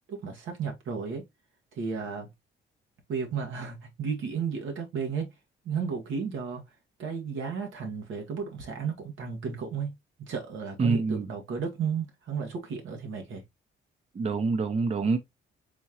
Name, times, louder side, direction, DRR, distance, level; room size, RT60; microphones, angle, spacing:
voice 1, 0.1-1.2 1.7-2.3 3.1-5.3 5.6-6.6 7.0-13.4, right 6 dB, 75° right, 1.5 m, -33 dB
voice 2, 10.8-11.3 14.1-15.2, right 4 dB, 35° right, 0.7 m, -26 dB
4.3 x 3.7 x 2.8 m
cardioid pair, 90°, 20 cm